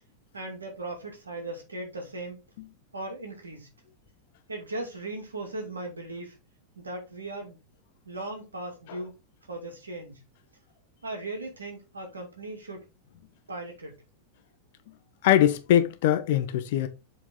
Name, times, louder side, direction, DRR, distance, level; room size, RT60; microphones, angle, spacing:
voice 1, 0.3-2.4 2.9-3.7 4.5-6.4 6.8-7.6 8.1-9.1 9.5-10.2 11.0-12.8 13.5-14.0, right 2 dB, 75° right, 2.5 m, -37 dB
voice 2, 15.2-16.9, left 11 dB, 50° left, 1.0 m, -22 dB
7.5 x 4.2 x 3.8 m
figure-of-eight pair, 90°, 0 cm